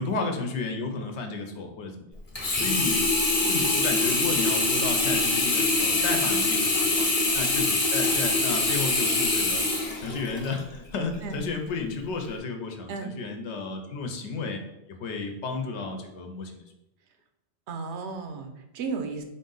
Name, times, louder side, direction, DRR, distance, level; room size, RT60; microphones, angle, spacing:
voice 1, 0.0-2.0 2.6-3.0 3.5-6.9 7.3-9.6 10.0-14.6 15.0-16.6, left 4 dB, 80° left, 4 dB, 1.0 m, -32 dB
Sink (filling or washing), 2.4-10.6 11.1-11.2, left 2 dB, 35° left, 0.8 m, -24 dB
voice 2, 17.7-19.2, right 4 dB, 80° right, 6 dB, 0.9 m, -34 dB
4.3 x 2.6 x 3.8 m, 0.91 s
omnidirectional pair, 1.1 m